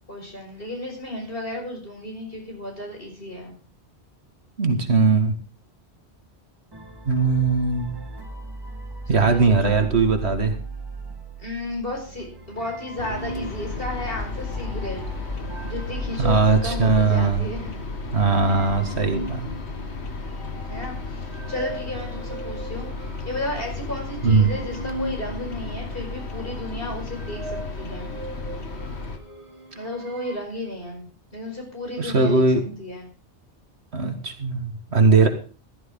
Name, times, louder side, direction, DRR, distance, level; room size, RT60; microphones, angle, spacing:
voice 1, 0.1-3.5 9.1-9.8 11.4-15.0 15.6-17.7 20.7-22.9 23.3-28.1 29.8-32.4 32.8-33.1, left 1 dB, 55° left, 1 dB, 5.6 m, -33 dB
voice 2, 4.6-5.3 7.1-7.9 9.1-10.6 16.2-17.4 18.1-19.5 24.2-24.5 32.0-32.6 33.9-35.3, right 4 dB, 70° right, 6 dB, 2.1 m, -19 dB
sound 1, 6.7-18.4, right 3 dB, 20° right, 1.5 m, -37 dB
sound 2, 12.1-30.4, right 2 dB, 85° right, 3.7 m, -40 dB
sound 3, 13.0-29.2, left 4 dB, 70° left, 1.8 m, -33 dB
15.5 x 12.5 x 3.8 m, 0.38 s
omnidirectional pair, 1.1 m